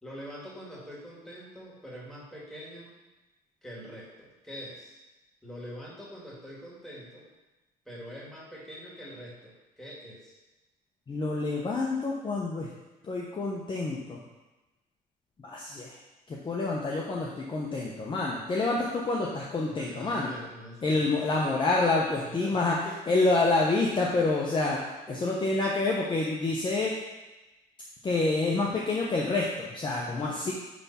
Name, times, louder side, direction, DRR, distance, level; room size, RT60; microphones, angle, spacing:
voice 1, 0.0-3.0 3.6-5.0 5.4-7.3 7.8-10.4 19.6-21.5 22.1-22.6 22.8-23.3 25.1-25.6 29.9-30.5, equal, 5° left, -6 dB, 2.6 m, -44 dB
voice 2, 11.1-12.7 13.1-14.2 15.4-16.0 16.3-20.3 20.8-22.8 23.1-24.8 25.1-26.9 28.0-30.5, left 3 dB, 30° left, -3 dB, 0.9 m, -27 dB
9.6 x 3.5 x 4.3 m, 1.1 s
cardioid pair, 110°, 17 cm